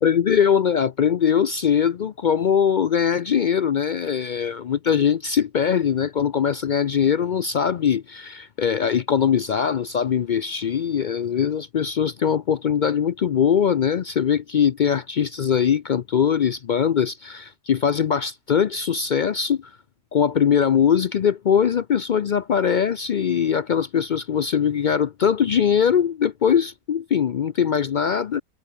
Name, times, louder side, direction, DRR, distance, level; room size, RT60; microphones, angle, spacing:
voice 1, 0.0-19.7 20.1-28.4, left 8 dB, 70° left, 0.4 m, -21 dB
omnidirectional pair, 1.5 m